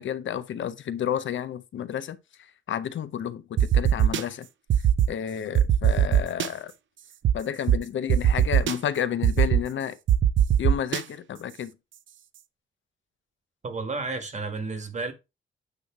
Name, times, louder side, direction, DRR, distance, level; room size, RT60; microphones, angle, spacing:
voice 1, 0.0-4.5 5.1-6.7 7.3-10.0 10.6-11.7, left 9 dB, 70° left, 0.6 m, -31 dB
sound 1, 3.6-4.2 4.7-5.1 5.6-6.5 7.2-7.3 7.7-7.8 8.1-8.7 9.2-9.6 10.1-11.0, right 10 dB, 70° right, 0.5 m, -20 dB
voice 2, 13.6-15.1, right 3 dB, 35° right, 1.4 m, -32 dB
8.9 x 3.1 x 4.7 m
wide cardioid pair, 150°, 21 cm